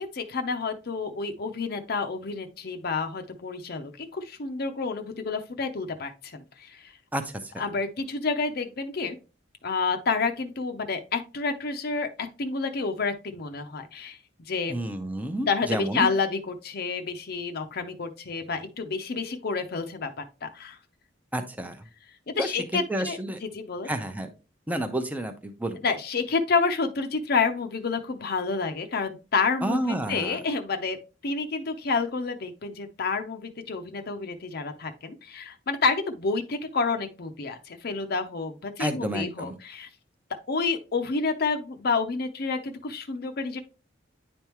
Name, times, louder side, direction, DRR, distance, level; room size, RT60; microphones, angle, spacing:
voice 1, 0.0-6.9 7.6-9.2 9.6-14.2 14.5-14.7 15.4-20.8 22.3-23.9 25.8-31.0 31.2-39.9 40.5-43.6, left 4 dB, 55° left, 6 dB, 0.6 m, -29 dB
voice 2, 7.1-7.6 14.7-16.1 21.3-21.8 22.4-22.5 22.9-23.4 23.8-24.3 24.7-25.8 29.6-30.4 38.8-39.6, right 1 dB, 10° right, 6 dB, 0.6 m, -30 dB
9.8 x 3.5 x 2.9 m, 0.31 s
head